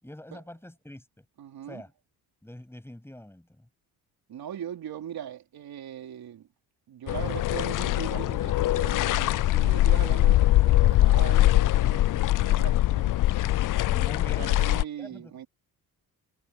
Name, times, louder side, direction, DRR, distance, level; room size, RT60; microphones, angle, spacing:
voice 1, 0.0-1.2 1.7-1.9 2.4-3.7 13.9-15.5, left 1 dB, 5° left, 7.6 m, -45 dB
voice 2, 1.4-1.8 4.3-6.5 6.9-13.1 14.3-15.5, right 10 dB, 65° right, 3.9 m, -39 dB
sound 1, 7.1-14.8, left 15 dB, 55° left, 0.5 m, -22 dB
cardioid pair, 100°, 39 cm